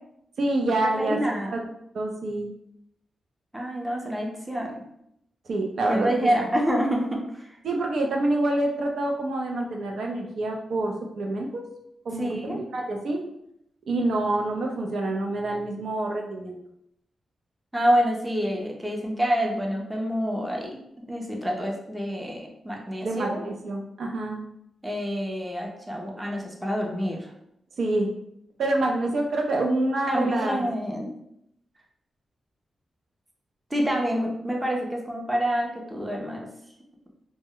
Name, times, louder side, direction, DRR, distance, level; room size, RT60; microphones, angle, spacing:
voice 1, 0.4-1.6 1.9-2.5 5.5-6.1 7.6-11.7 12.1-13.2 13.9-16.6 23.0-24.4 27.8-28.1 28.6-30.7, right 2 dB, 70° right, 1 dB, 0.4 m, -27 dB
voice 2, 1.0-1.6 3.5-4.8 5.9-7.6 12.2-12.6 17.7-23.4 24.8-27.3 30.1-31.1 33.7-36.5, equal, 10° right, -1 dB, 0.5 m, -27 dB
2.0 x 2.0 x 3.6 m, 0.77 s
wide cardioid pair, 115°, 0 cm